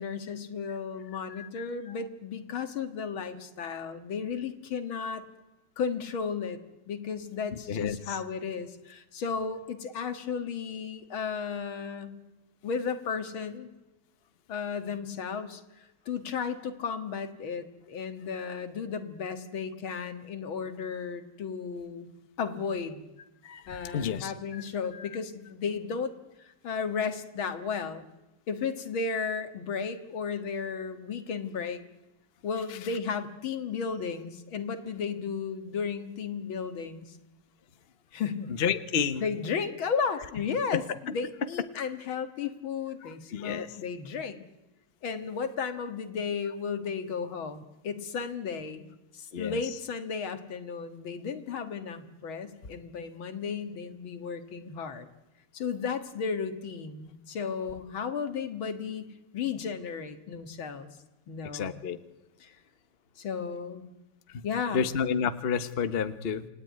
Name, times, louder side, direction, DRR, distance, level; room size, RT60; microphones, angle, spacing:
voice 1, 0.0-5.2 5.8-6.6 6.9-12.1 12.6-13.7 14.5-22.1 22.4-23.0 23.7-26.1 26.4-28.1 28.5-31.8 32.4-37.2 38.1-38.5 39.2-44.4 45.0-48.8 49.1-55.1 55.5-60.9 61.3-61.8 62.4-62.6 63.2-63.9 64.4-64.8, left 6 dB, 65° left, 8 dB, 2.4 m, -34 dB
voice 2, 1.3-1.9 7.7-8.2 23.4-24.6 24.9-25.1 38.5-39.2 40.7-40.8 43.0-43.7 49.3-49.6 61.5-62.0 64.3-64.4 64.7-66.5, left 7 dB, 40° left, 10 dB, 0.8 m, -31 dB
28.0 x 19.0 x 9.5 m, 1.1 s
omnidirectional pair, 2.4 m